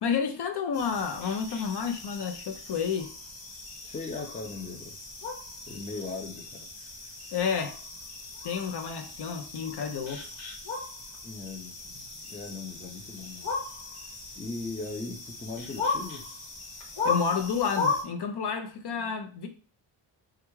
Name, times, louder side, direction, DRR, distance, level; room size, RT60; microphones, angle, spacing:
voice 1, 0.0-3.1 7.3-7.8 8.4-10.2 17.0-19.5, left 6 dB, 55° left, 0.7 m, -30 dB
sound 1, 0.7-18.0, left 3 dB, 70° left, 1.3 m, -37 dB
voice 2, 3.8-4.9 5.7-6.7 11.2-13.5 14.3-16.2, left 3 dB, 15° left, 0.6 m, -39 dB
3.4 x 2.4 x 3.0 m
wide cardioid pair, 120°, 49 cm